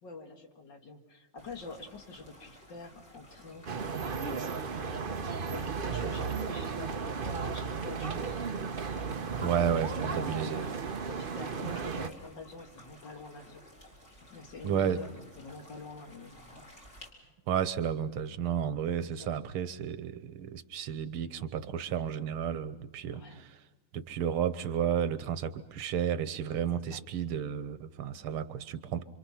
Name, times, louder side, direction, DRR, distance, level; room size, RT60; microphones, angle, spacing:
voice 1, 0.0-4.7 5.5-9.0 9.4-10.7 11.0-13.6 14.3-16.7 19.2-19.3 23.1-23.5 26.7-27.0, left 3 dB, 55° left, 4 dB, 2.7 m, -46 dB
sound 1, 1.4-17.1, left 1 dB, 30° left, 4.3 m, -55 dB
sound 2, 3.7-12.1, right 5 dB, 50° right, 0.6 m, -34 dB
voice 2, 9.4-10.7 14.6-15.0 17.5-23.2 23.9-29.0, right 8 dB, 85° right, 12 dB, 1.9 m, -32 dB
26.5 x 26.0 x 5.9 m, 1.1 s
omnidirectional pair, 2.3 m